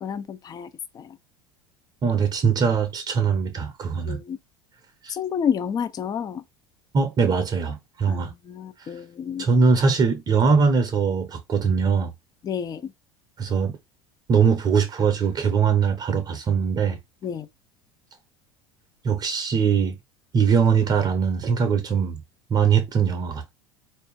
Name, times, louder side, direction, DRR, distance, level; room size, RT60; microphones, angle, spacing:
voice 1, 0.0-0.7 0.9-1.2 4.1-4.4 5.1-6.4 8.1-9.5 12.4-12.9 17.2-17.5, left 7 dB, 30° left, 0.6 m, -30 dB
voice 2, 2.0-4.2 5.0-5.2 6.9-8.3 8.8-8.9 9.4-12.1 13.4-13.8 14.3-17.0 19.0-20.0 20.3-22.2 22.5-23.5, right 6 dB, 30° right, 0.8 m, -21 dB
4.2 x 2.6 x 3.6 m
figure-of-eight pair, 70°, 13 cm